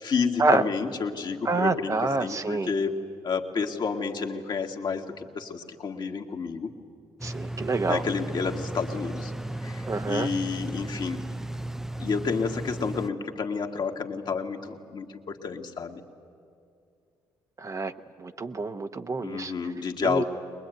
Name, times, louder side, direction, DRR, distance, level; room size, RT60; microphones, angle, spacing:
voice 1, 0.0-3.0 3.2-6.7 7.9-9.3 9.6-11.2 12.0-16.0 19.2-20.2, left 5 dB, 50° left, 3 dB, 1.9 m, -30 dB
voice 2, 1.4-2.7 7.2-8.0 9.9-10.3 17.6-17.9 18.2-19.5 20.0-20.2, right 3 dB, 35° right, 8 dB, 1.0 m, -27 dB
sound 1, 7.2-13.1, right 1 dB, 5° right, 0.5 m, -35 dB
22.5 x 20.5 x 9.2 m, 2.4 s
supercardioid pair, 60°, 9 cm